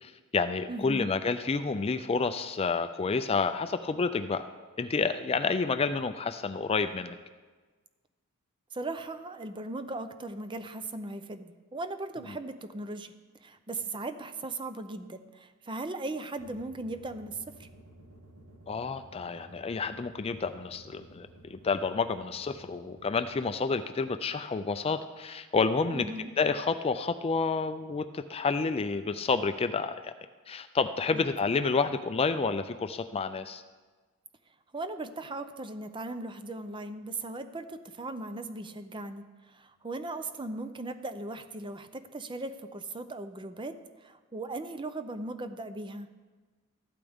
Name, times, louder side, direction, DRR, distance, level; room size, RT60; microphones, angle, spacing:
voice 1, 0.0-4.5 4.8-7.2 18.7-26.1 26.4-30.1 30.5-33.6, left 4 dB, 25° left, 10 dB, 0.4 m, -29 dB
voice 2, 0.7-1.1 8.7-13.1 13.4-17.7 25.9-26.3 31.1-31.3 34.7-46.1, right 2 dB, 20° right, 10 dB, 0.6 m, -38 dB
sound 1, 16.4-23.4, right 1 dB, 80° right, 2.3 m, -53 dB
14.5 x 12.0 x 3.6 m, 1.3 s
head